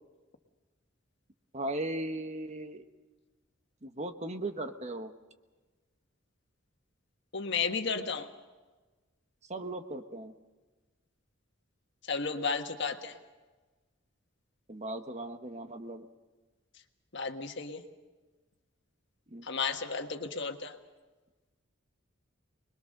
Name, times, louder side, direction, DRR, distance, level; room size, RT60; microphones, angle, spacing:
voice 1, 1.5-2.9 3.8-5.1 9.5-10.3 14.7-16.1 19.3-19.5, right 1 dB, 35° right, 8 dB, 1.2 m, -37 dB
voice 2, 7.3-8.3 12.1-13.1 17.1-17.8 19.5-20.7, left 5 dB, 60° left, 6 dB, 1.5 m, -33 dB
25.5 x 21.5 x 6.6 m, 1.3 s
head